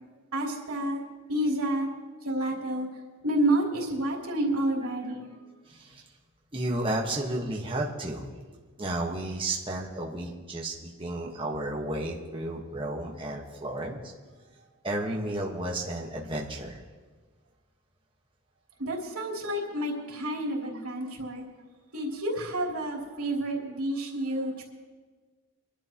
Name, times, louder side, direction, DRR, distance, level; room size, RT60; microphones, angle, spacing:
voice 1, 0.3-1.0 1.3-1.9 2.2-2.9 3.2-5.3 18.8-21.4 21.9-24.6, right 1 dB, 90° right, -2 dB, 3.2 m, -29 dB
voice 2, 5.7-6.0 6.5-8.3 8.8-14.0 14.8-16.8, right 1 dB, 25° right, -2 dB, 1.4 m, -32 dB
25.0 x 12.0 x 3.0 m, 1.4 s
head